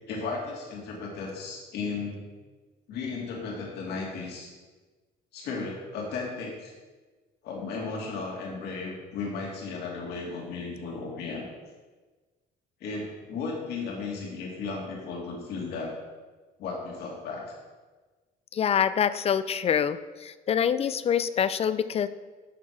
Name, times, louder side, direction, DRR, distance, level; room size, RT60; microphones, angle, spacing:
voice 1, 0.1-2.2 2.9-4.5 5.3-6.7 7.4-11.4 12.8-15.9 16.6-17.4, left 4 dB, 75° left, -1 dB, 2.3 m, -35 dB
voice 2, 18.5-20.0 20.2-22.1, left 8 dB, 35° left, 14 dB, 0.4 m, -25 dB
11.5 x 4.6 x 4.7 m, 1.3 s
cardioid pair, 110°, 17 cm